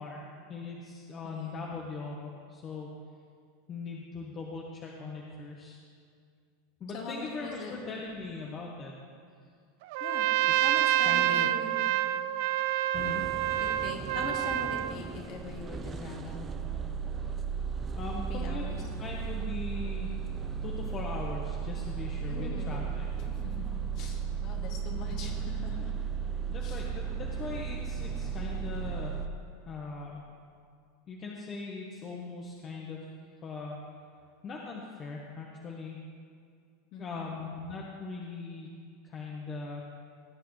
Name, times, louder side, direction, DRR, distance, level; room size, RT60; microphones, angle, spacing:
voice 1, 0.0-2.9 3.7-5.8 6.8-8.9 11.0-11.5 12.9-13.3 18.0-18.6 19.0-20.1 20.6-23.1 26.5-29.1 29.6-30.3 31.1-33.0 33.4-33.8 34.4-36.0 37.0-38.7 39.0-39.8, left 4 dB, 35° left, -2 dB, 1.3 m, -40 dB
voice 2, 1.2-1.7 6.9-7.7 10.0-10.3 10.6-11.7 13.5-16.5 18.3-18.8 22.2-22.8 23.6-26.0 26.6-26.8 36.9-37.4, left 4 dB, 50° left, 0 dB, 2.3 m, -42 dB
Trumpet, 9.9-15.0, right 15 dB, 65° right, 0.3 m, -27 dB
sound 1, 12.9-29.3, right 7 dB, 25° right, 0.8 m, -35 dB
19.0 x 8.3 x 3.3 m, 2.2 s
hypercardioid pair, 95°, 0 cm